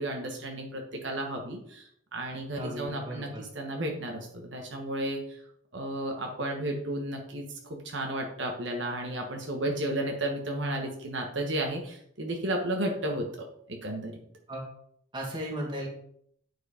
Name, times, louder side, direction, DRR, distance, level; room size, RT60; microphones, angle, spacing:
voice 1, 0.0-5.4 5.7-7.4 7.8-13.3 13.7-14.2, right 1 dB, 65° right, 2 dB, 1.2 m, -33 dB
voice 2, 2.6-3.3 14.5-14.6 15.1-15.9, right 1 dB, 25° right, -2 dB, 2.1 m, -35 dB
9.4 x 4.8 x 5.0 m, 0.68 s
head